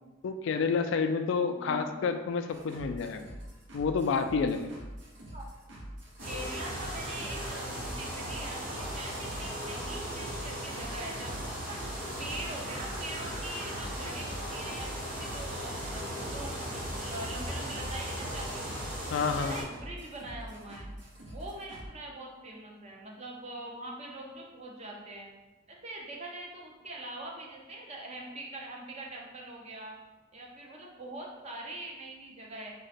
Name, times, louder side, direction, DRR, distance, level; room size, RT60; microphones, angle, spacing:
voice 1, 0.2-3.3 3.7-4.7 19.1-19.7, left 5 dB, 70° left, 8 dB, 0.3 m, -29 dB
voice 2, 1.6-2.1 5.3-5.4 6.3-11.8 12.2-18.7 19.0-20.9 21.3-25.3 25.7-30.0 30.3-32.7, right 1 dB, 35° right, -1 dB, 0.6 m, -43 dB
sound 1, 2.5-21.9, equal, 70° right, 0.9 m, -45 dB
sound 2, 6.2-19.6, equal, 50° right, 1.2 m, -37 dB
3.7 x 2.2 x 4.1 m, 1.1 s
head